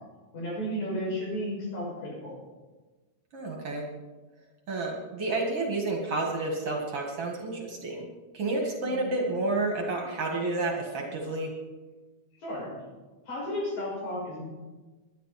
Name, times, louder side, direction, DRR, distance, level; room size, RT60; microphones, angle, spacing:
voice 1, 0.3-2.4 8.8-9.1 12.4-12.7 13.3-14.4, equal, 65° left, -4 dB, 7.4 m, -33 dB
voice 2, 3.3-3.8 4.7-8.1 8.3-11.5, right 2 dB, 50° right, 0 dB, 2.5 m, -30 dB
22.0 x 10.5 x 4.2 m, 1.2 s
omnidirectional pair, 3.5 m